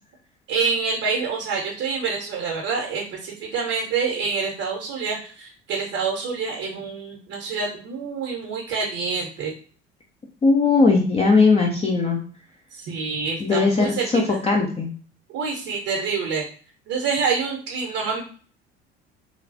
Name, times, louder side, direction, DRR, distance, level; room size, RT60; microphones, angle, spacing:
voice 1, 0.5-9.5 12.7-14.4 15.3-16.5 16.9-18.2, right 5 dB, 50° right, 0 dB, 0.8 m, -27 dB
voice 2, 10.4-12.2 13.4-14.9, left 4 dB, 20° left, -1 dB, 0.5 m, -19 dB
3.2 x 2.3 x 2.6 m, 0.42 s
figure-of-eight pair, 60°, 32 cm